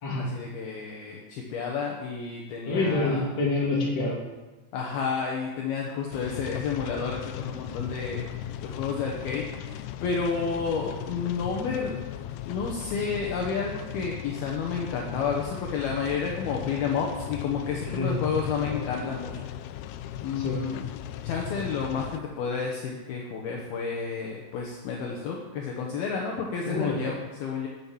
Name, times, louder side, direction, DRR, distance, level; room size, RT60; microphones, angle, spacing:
voice 1, 0.2-3.2 4.7-8.3 8.6-11.9 12.4-19.5 20.2-20.9 21.2-27.7, left 5 dB, 70° left, -1 dB, 2.8 m, -31 dB
voice 2, 2.7-4.2 17.8-18.1 20.3-20.6 26.6-27.0, left 2 dB, 25° left, -4 dB, 3.0 m, -27 dB
sound 1, 6.1-22.2, left 11 dB, 90° left, 2.3 m, -37 dB
12.5 x 7.9 x 7.2 m, 1.2 s
omnidirectional pair, 5.1 m